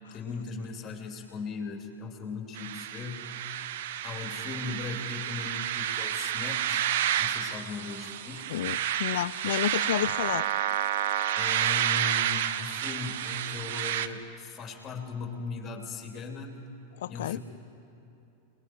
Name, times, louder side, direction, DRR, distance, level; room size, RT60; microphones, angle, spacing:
voice 1, 0.1-3.3 4.0-6.9 7.2-8.6 11.4-16.6 17.1-17.4, left 4 dB, 25° left, 3 dB, 3.1 m, -38 dB
sound 1, 2.6-14.1, right 10 dB, 55° right, 0.7 m, -30 dB
voice 2, 8.5-10.5 17.0-17.4, left 12 dB, 60° left, 20 dB, 0.3 m, -30 dB
27.5 x 20.0 x 4.7 m, 2.8 s
figure-of-eight pair, 90°, 0 cm